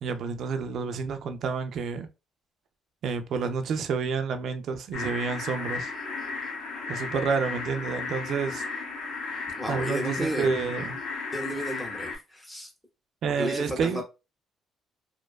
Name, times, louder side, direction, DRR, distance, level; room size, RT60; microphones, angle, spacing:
voice 1, 0.0-2.1 3.0-5.9 6.9-8.6 9.7-11.0 13.2-14.0, right 5 dB, 50° right, 0.3 m, -29 dB
sound 1, 4.9-12.2, left 4 dB, 65° left, 0.8 m, -34 dB
voice 2, 9.6-10.6 11.3-12.7 13.3-14.0, equal, 5° left, 0.6 m, -33 dB
2.5 x 2.2 x 2.3 m
cardioid pair, 175°, 0 cm